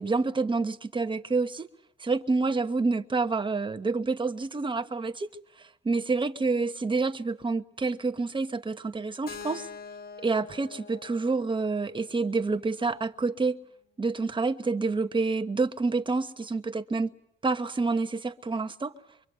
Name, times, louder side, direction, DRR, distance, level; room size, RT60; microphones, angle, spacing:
voice 1, 0.0-1.7 2.0-5.3 5.8-9.7 10.2-13.6 14.0-17.1 17.4-18.9, right 3 dB, 25° right, 1.2 m, -28 dB
Keyboard (musical), 9.3-13.2, left 6 dB, 50° left, 1.3 m, -45 dB
24.0 x 24.0 x 8.2 m
cardioid pair, 90°, 20 cm